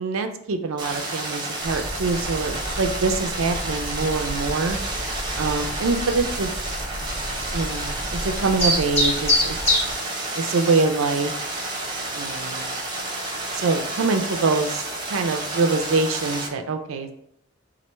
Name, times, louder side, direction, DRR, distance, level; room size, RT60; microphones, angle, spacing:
voice 1, 0.0-4.8 5.4-6.5 7.5-9.6 10.3-11.3 12.1-12.7 13.5-14.9 15.1-17.1, right 3 dB, 80° right, 6 dB, 0.4 m, -24 dB
sound 1, 0.8-16.5, right 2 dB, 20° right, 0.8 m, -30 dB
sound 2, 1.6-9.9, left 1 dB, 30° left, 1.2 m, -28 dB
4.4 x 2.5 x 3.0 m, 0.72 s
head